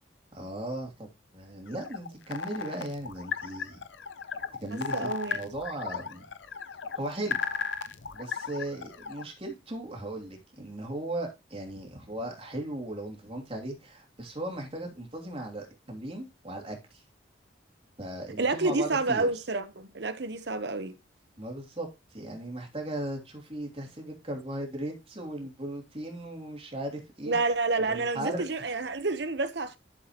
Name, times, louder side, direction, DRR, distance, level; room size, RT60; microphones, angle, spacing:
voice 1, 0.3-1.1 1.3-3.8 4.6-6.2 6.9-7.4 8.1-17.0 18.0-19.3 21.4-27.4 27.8-28.4, right 1 dB, 30° right, 2.9 m, -37 dB
sound 1, 1.7-9.2, left 5 dB, 85° left, 0.8 m, -35 dB
voice 2, 4.9-5.5 18.4-20.9 27.3-29.8, right 3 dB, 65° right, 1.0 m, -29 dB
12.0 x 7.5 x 3.0 m
head